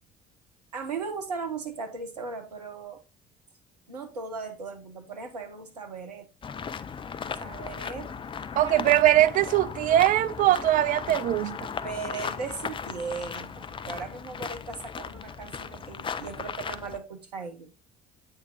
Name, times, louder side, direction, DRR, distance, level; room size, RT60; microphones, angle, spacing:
voice 1, 0.7-3.0 3.9-6.3 7.4-8.1 11.1-11.2 11.8-17.7, right 5 dB, 80° right, 0.9 m, -37 dB
sound 1, 6.4-17.0, left 6 dB, 25° left, 0.5 m, -37 dB
voice 2, 8.6-11.7, right 14 dB, 45° right, 0.4 m, -21 dB
8.2 x 4.0 x 3.7 m
figure-of-eight pair, 55°, 20 cm